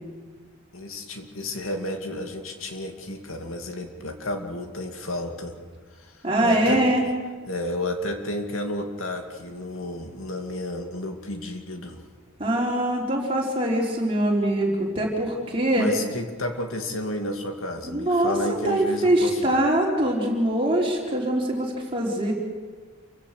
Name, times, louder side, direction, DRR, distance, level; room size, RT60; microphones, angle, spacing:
voice 1, 0.7-5.6 6.0-7.1 7.5-12.0 15.7-19.6, left 1 dB, 75° left, 4 dB, 2.4 m, -32 dB
voice 2, 6.2-7.0 12.4-15.9 17.9-18.3 18.6-22.3, right 1 dB, 25° right, -2 dB, 4.0 m, -23 dB
28.0 x 16.5 x 6.7 m, 1.5 s
head